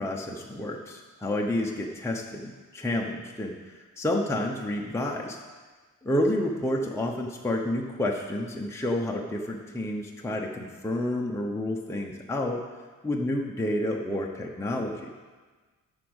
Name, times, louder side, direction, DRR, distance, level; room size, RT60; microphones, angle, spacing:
voice 1, 0.0-5.4 6.0-12.6 13.0-15.1, left 1 dB, 10° left, -1 dB, 0.8 m, -30 dB
8.3 x 6.3 x 8.0 m, 1.4 s
wide cardioid pair, 130°, 33 cm